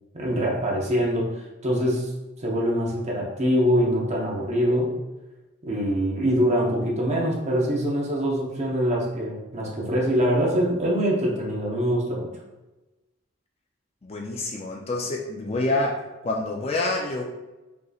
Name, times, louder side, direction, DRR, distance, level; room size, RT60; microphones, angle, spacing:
voice 1, 0.1-1.3 1.6-2.1 2.4-5.0 5.6-12.3, equal, 35° right, -2 dB, 0.8 m, -24 dB
voice 2, 14.0-17.2, left 2 dB, 30° left, 0 dB, 0.4 m, -27 dB
5.1 x 3.0 x 2.4 m, 1.1 s
head